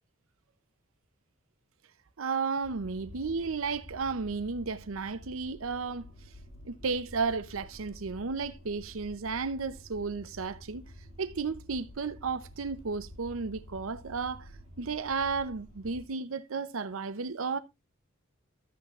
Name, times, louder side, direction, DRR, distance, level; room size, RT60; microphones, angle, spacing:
voice 1, 2.2-6.1 6.6-10.8 11.2-14.5 14.8-17.6, right 4 dB, 85° right, 0.7 m, -33 dB
sound 1, 2.6-16.1, equal, 75° left, 7.1 m, -50 dB
12.5 x 8.4 x 2.4 m
head